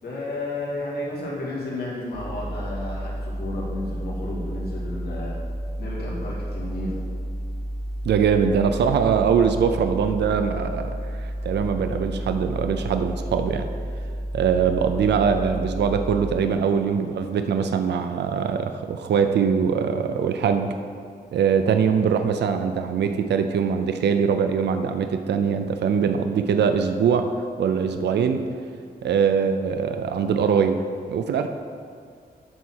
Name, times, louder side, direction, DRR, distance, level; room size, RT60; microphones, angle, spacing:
voice 1, 0.0-5.3 5.8-7.0, left 1 dB, 70° left, -6 dB, 2.4 m, -32 dB
sound 1, 2.1-16.4, equal, 30° left, 2.0 m, -31 dB
voice 2, 8.0-13.7 14.3-20.8 21.3-27.3 27.6-28.4 29.0-30.8 31.1-31.5, right 6 dB, 90° right, 7 dB, 0.5 m, -22 dB
11.0 x 4.1 x 6.3 m, 2.2 s
wide cardioid pair, 100°, 17 cm